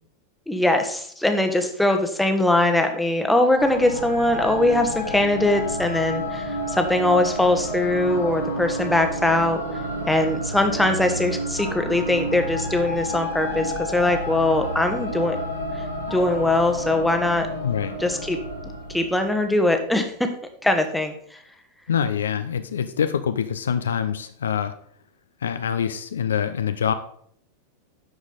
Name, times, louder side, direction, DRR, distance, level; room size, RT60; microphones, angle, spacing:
voice 1, 0.5-9.6 10.1-15.4 16.1-17.5 18.0-18.4 18.9-20.1 20.6-21.1, left 1 dB, 5° left, 5 dB, 1.0 m, -21 dB
sound 1, 3.6-19.8, equal, 85° left, 3.3 m, -30 dB
voice 2, 17.6-18.0 21.9-24.7 25.4-26.9, left 8 dB, 65° left, 10 dB, 0.5 m, -25 dB
11.0 x 4.8 x 4.0 m, 0.64 s
figure-of-eight pair, 90°, 0 cm